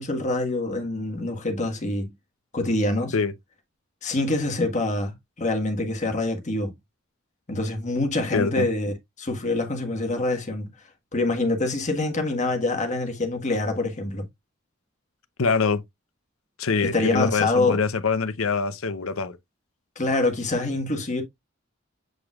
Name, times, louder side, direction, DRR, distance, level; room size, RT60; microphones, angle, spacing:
voice 1, 0.0-2.1 2.5-3.1 4.0-6.7 7.5-10.7 11.1-14.2 16.8-17.8 19.9-21.2, left 2 dB, 35° left, 1.6 m, -25 dB
voice 2, 8.3-8.7 15.4-15.8 16.6-19.4, left 4 dB, 80° left, 0.8 m, -24 dB
7.7 x 5.0 x 2.4 m
head